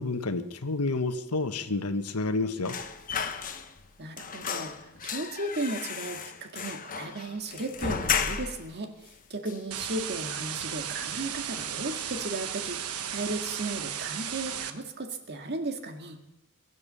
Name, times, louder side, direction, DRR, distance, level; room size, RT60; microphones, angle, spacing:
voice 1, 0.0-2.7, left 3 dB, 90° left, 9 dB, 1.4 m, -29 dB
sound 1, 2.6-3.9 4.2-8.7 9.1-9.2 9.5-10.3 10.6-10.8 11.1-11.8 12.1-12.3, left 6 dB, 40° left, 1.1 m, -34 dB
voice 2, 4.0-16.2, right 2 dB, 50° right, 5 dB, 2.0 m, -35 dB
sound 2, 9.7-14.7, right 9 dB, 80° right, 1.2 m, -35 dB
22.5 x 8.4 x 6.9 m, 0.93 s
head